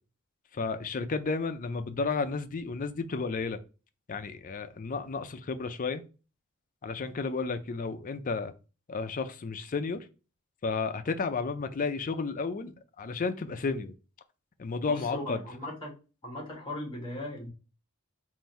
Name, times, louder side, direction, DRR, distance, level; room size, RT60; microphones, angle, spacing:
voice 1, 0.5-3.6 4.1-6.0 6.8-8.5 8.9-10.1 10.6-13.9 14.6-15.4, left 4 dB, 40° left, 0.4 m, -32 dB
voice 2, 14.8-15.9 16.2-17.5, left 1 dB, 25° left, 1.3 m, -38 dB
3.8 x 2.6 x 4.2 m
head